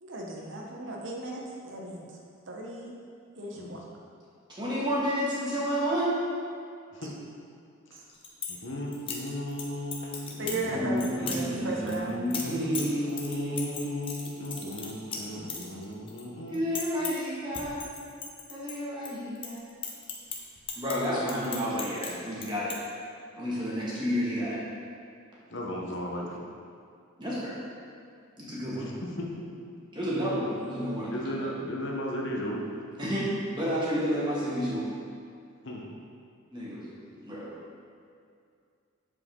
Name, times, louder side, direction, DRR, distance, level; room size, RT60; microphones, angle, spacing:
voice 1, 0.0-2.2 2.5-2.9 3.4-3.8 7.9-8.0 10.4-12.2, right 2 dB, 60° right, -2 dB, 0.9 m, -36 dB
voice 2, 4.6-6.1 10.7-13.9 16.5-17.8 18.5-19.6 20.8-22.7 23.4-24.6 27.2-27.6 28.4-28.9 29.9-31.1 31.4-31.5 33.0-34.8 36.5-36.9 37.2-37.5, equal, 20° right, -7 dB, 1.5 m, -30 dB
sound 1, 8.0-8.6 8.9-9.6 9.9-10.6 11.0-11.4 11.9-16.2 16.5-17.3 17.5-19.1 19.4-22.1 22.4-22.8, left 6 dB, 25° left, 0.6 m, -37 dB
voice 3, 8.5-16.6 25.5-26.4 28.8-29.5 31.1-32.6 35.6-35.9, left 1 dB, 55° left, -1 dB, 0.9 m, -36 dB
7.5 x 4.9 x 3.7 m, 2.3 s
head